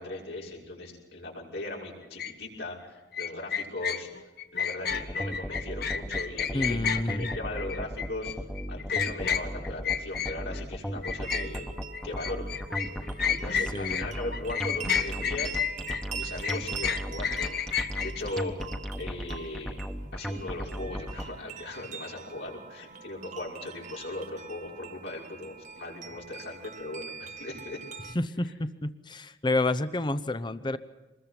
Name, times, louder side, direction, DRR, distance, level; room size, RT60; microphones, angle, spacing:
voice 1, 0.0-4.1 4.5-6.8 7.2-8.3 8.7-11.7 12.0-12.5 13.2-15.6 16.1-17.6 18.0-18.6 19.0-19.8 20.1-27.8, left 2 dB, 80° left, -3 dB, 6.0 m, -38 dB
sound 1, 2.2-2.3 3.1-10.7 11.0-14.1 14.3-18.2, left 7 dB, 60° left, 1.2 m, -31 dB
sound 2, 4.9-21.2, equal, 5° left, 1.3 m, -36 dB
voice 2, 6.5-7.4 13.7-14.1 28.1-30.8, left 2 dB, 25° left, 13 dB, 0.8 m, -29 dB
sound 3, 11.2-28.2, right 7 dB, 45° right, 1.1 m, -44 dB
25.5 x 21.0 x 5.9 m, 1.2 s
head